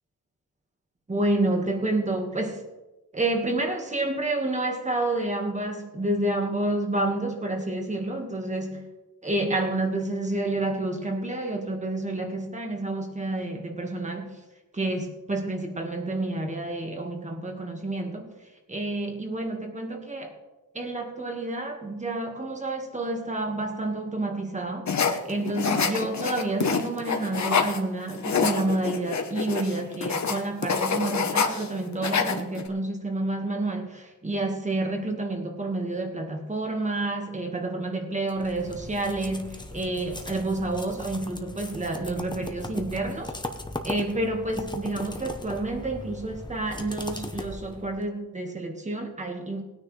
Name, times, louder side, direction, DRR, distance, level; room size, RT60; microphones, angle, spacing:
voice 1, 1.1-2.6 3.1-8.9 9.2-14.4 14.7-18.4 18.7-20.3 20.7-43.3 43.8-49.6, right 2 dB, 20° right, 3 dB, 1.6 m, -29 dB
sound 1, 24.9-27.8 28.1-31.7 31.9-32.7, left 5 dB, 55° left, 1.1 m, -26 dB
sound 2, 38.3-48.0, left 2 dB, 15° left, 0.8 m, -38 dB
19.5 x 9.6 x 3.3 m, 1.1 s
wide cardioid pair, 175°, 33 cm